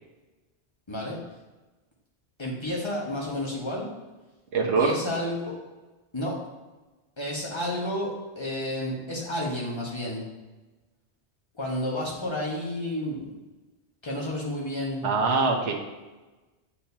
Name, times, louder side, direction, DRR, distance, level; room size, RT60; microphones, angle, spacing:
voice 1, 0.9-1.2 2.4-3.9 4.8-5.5 6.1-6.3 7.2-10.3 11.6-13.3 14.0-15.1, left 1 dB, 25° left, -4 dB, 1.4 m, -31 dB
voice 2, 4.5-4.9 15.0-15.7, right 4 dB, 85° right, 1 dB, 1.2 m, -23 dB
8.7 x 4.4 x 2.8 m, 1.2 s
omnidirectional pair, 1.2 m